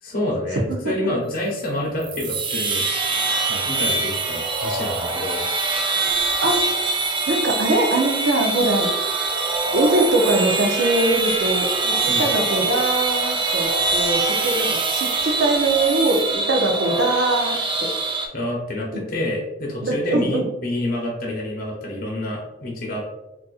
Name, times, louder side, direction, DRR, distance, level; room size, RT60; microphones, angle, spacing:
voice 1, 0.0-2.9 3.5-5.4 12.1-12.3 18.3-23.2, left 1 dB, 50° left, -1 dB, 0.7 m, -28 dB
sound 1, 2.0-18.3, right 3 dB, 25° right, 0.4 m, -23 dB
voice 2, 7.3-8.9 9.7-17.9 19.8-20.4, right 2 dB, 75° right, 2 dB, 0.6 m, -22 dB
3.9 x 2.5 x 2.4 m, 0.96 s
head